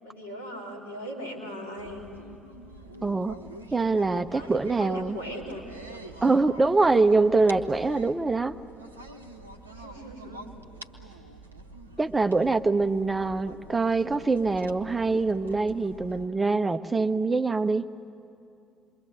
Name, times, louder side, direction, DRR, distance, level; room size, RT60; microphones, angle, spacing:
voice 1, 0.0-2.1 4.1-5.6 9.7-10.5, equal, 80° left, -2 dB, 3.2 m, -39 dB
sound 1, 1.8-16.3, right 2 dB, 85° right, 0.8 m, -46 dB
voice 2, 3.0-3.4 3.7-5.2 6.2-8.5 12.0-17.8, right 3 dB, 20° right, 11 dB, 0.8 m, -24 dB
27.5 x 23.0 x 8.0 m, 2.7 s
figure-of-eight pair, 45°, 0 cm